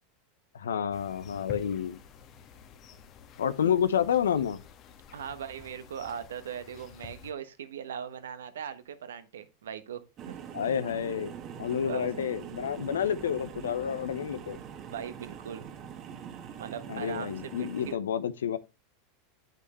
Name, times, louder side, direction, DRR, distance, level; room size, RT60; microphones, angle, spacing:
voice 1, 0.5-2.0 3.4-4.6 10.5-14.6 16.9-18.6, left 8 dB, 85° left, 0.8 m, -29 dB
sound 1, 0.9-7.3, left 6 dB, 45° left, 1.5 m, -49 dB
voice 2, 5.1-10.4 11.8-12.1 14.9-15.6 16.6-18.0, right 8 dB, 80° right, 1.2 m, -39 dB
sound 2, 10.2-17.9, right 8 dB, 45° right, 1.5 m, -43 dB
8.7 x 8.1 x 3.1 m
hypercardioid pair, 95°, 0 cm